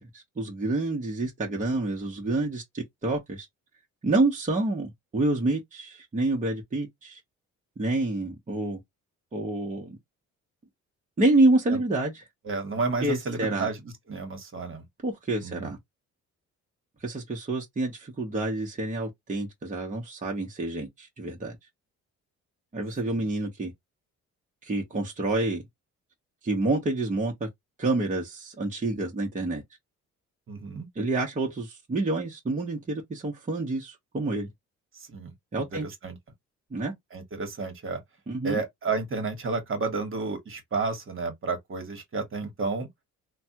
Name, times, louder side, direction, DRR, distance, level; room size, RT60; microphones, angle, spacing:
voice 1, 0.1-3.5 4.0-7.2 7.8-8.8 9.3-10.0 11.2-12.2 13.0-13.7 15.0-15.8 17.0-21.6 22.7-23.7 24.6-25.6 26.4-27.5 27.8-29.6 31.0-34.5 35.5-35.9 36.7-36.9 38.3-38.6, right 2 dB, 25° right, 1.1 m, -28 dB
voice 2, 12.4-13.8 14.1-14.8 15.4-15.7 23.2-23.3 30.5-30.9 34.9-35.3 35.7-36.2 37.1-38.0 38.4-42.9, right 4 dB, 45° right, 1.4 m, -31 dB
3.2 x 2.3 x 2.9 m
cardioid pair, 90°, 30 cm